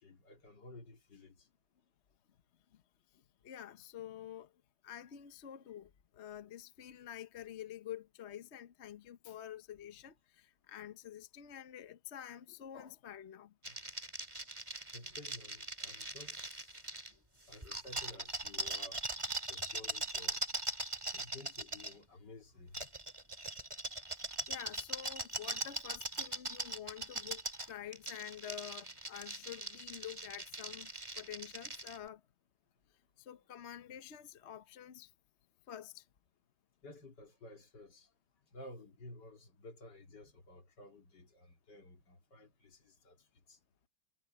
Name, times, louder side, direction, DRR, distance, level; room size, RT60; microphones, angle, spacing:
voice 1, 0.0-1.5 13.7-13.8 14.9-16.8 17.5-19.0 19.5-20.4 21.1-22.8 36.8-38.1 38.5-43.6, left 2 dB, 70° left, 3.3 m, -54 dB
voice 2, 3.4-4.5 4.8-13.5 17.1-17.2 21.1-21.2 24.5-30.9 31.2-32.2 33.2-35.1 35.7-36.1, left 10 dB, 45° left, 1.0 m, -48 dB
sound 1, 13.6-17.1 17.5-21.9 22.7-32.0, right 2 dB, 15° right, 2.1 m, -41 dB
omnidirectional pair, 1.9 m